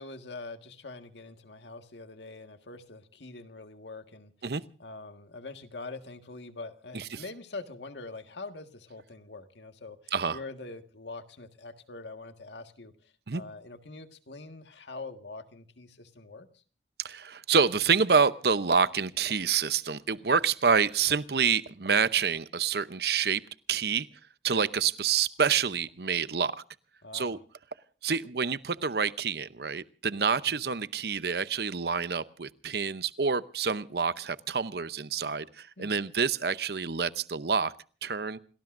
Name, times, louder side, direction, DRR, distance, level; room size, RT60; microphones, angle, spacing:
voice 1, 0.0-4.3 4.8-12.9 13.3-16.5 27.0-27.4 30.5-30.7 35.8-36.0, left 3 dB, 80° left, 1.7 m, -44 dB
voice 2, 17.0-23.4 23.7-24.1 24.4-26.6 27.1-27.4 28.0-37.7 38.0-38.4, right 6 dB, 60° right, 0.7 m, -27 dB
28.5 x 19.0 x 2.6 m
head